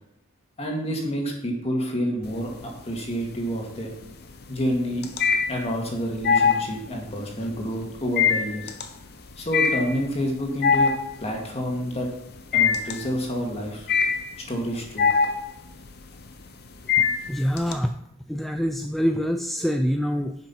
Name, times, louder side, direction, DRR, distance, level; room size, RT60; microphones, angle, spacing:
voice 1, 0.6-2.5 2.8-3.9 4.5-5.0 5.5-8.7 9.4-10.9 11.2-12.1 12.5-13.9 14.5-15.1, equal, 30° left, 1 dB, 2.1 m, -28 dB
sound 1, 2.2-2.9 3.2-17.7, left 6 dB, 50° left, 0.9 m, -24 dB
voice 2, 17.0-17.9 18.3-20.4, equal, ahead, 6 dB, 0.3 m, -25 dB
10.0 x 5.9 x 5.7 m, 0.82 s
head